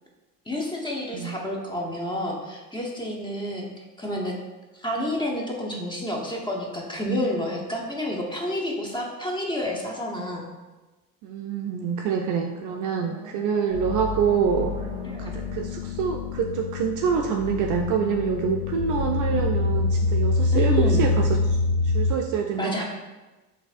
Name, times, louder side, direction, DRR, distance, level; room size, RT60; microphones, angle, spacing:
voice 1, 0.5-4.3 4.7-10.4 15.0-15.4 20.5-21.2 22.5-22.8, left 1 dB, 10° left, -1 dB, 0.8 m, -29 dB
voice 2, 11.2-14.9 15.2-21.6 21.8-22.8, right 6 dB, 45° right, 2 dB, 0.4 m, -26 dB
sound 1, 12.2-17.3, right 2 dB, 15° right, 0.7 m, -43 dB
sound 2, 13.7-22.1, left 3 dB, 75° left, 0.6 m, -26 dB
6.1 x 2.7 x 2.5 m, 1.2 s
hypercardioid pair, 70°, 47 cm